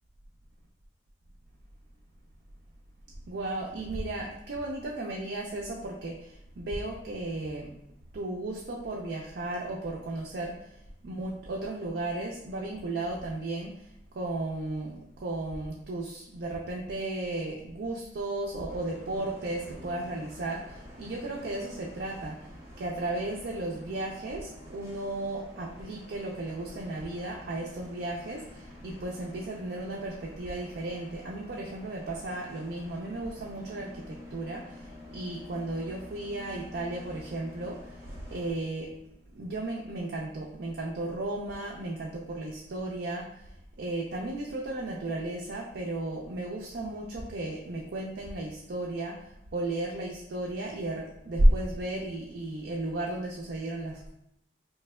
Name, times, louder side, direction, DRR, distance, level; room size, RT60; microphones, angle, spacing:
voice 1, 3.3-7.7 8.1-10.7 11.0-13.9 14.1-22.5 22.8-38.0 38.3-38.9 39.3-43.5 43.8-54.1, right 1 dB, 70° right, -2 dB, 0.4 m, -34 dB
Bus, 18.7-38.5, left 1 dB, 15° right, 0.8 m, -49 dB
4.1 x 3.2 x 2.2 m, 0.81 s
head